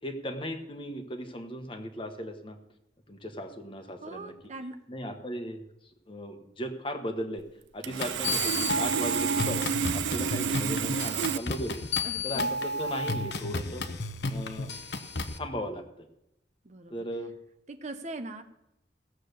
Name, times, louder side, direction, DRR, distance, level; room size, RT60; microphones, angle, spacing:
voice 1, 0.0-2.6 3.1-4.5 4.9-5.6 6.1-7.4 7.7-9.6 9.9-11.8 12.2-13.9 14.3-14.7 15.3-16.1 16.9-17.3, equal, 30° left, 6 dB, 1.3 m, -37 dB
voice 2, 4.0-4.8 10.9-11.5 12.0-12.5 16.6-17.0 17.7-18.4, right 2 dB, 40° right, 8 dB, 0.8 m, -41 dB
Sawing, 7.8-11.4, right 7 dB, 75° right, 0.4 m, -29 dB
sound 1, 8.0-15.4, left 2 dB, 60° left, 1.0 m, -32 dB
17.0 x 7.5 x 6.7 m, 0.86 s
head